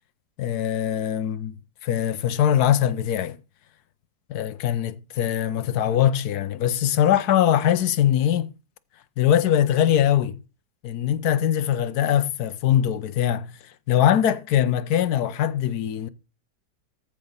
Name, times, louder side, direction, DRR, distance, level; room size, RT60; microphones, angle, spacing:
voice 1, 0.4-1.5 1.8-3.4 4.3-4.9 5.2-8.5 9.2-10.4 10.8-13.5 13.9-16.1, left 10 dB, 70° left, 1.2 m, -22 dB
14.0 x 4.7 x 5.4 m
omnidirectional pair, 1.8 m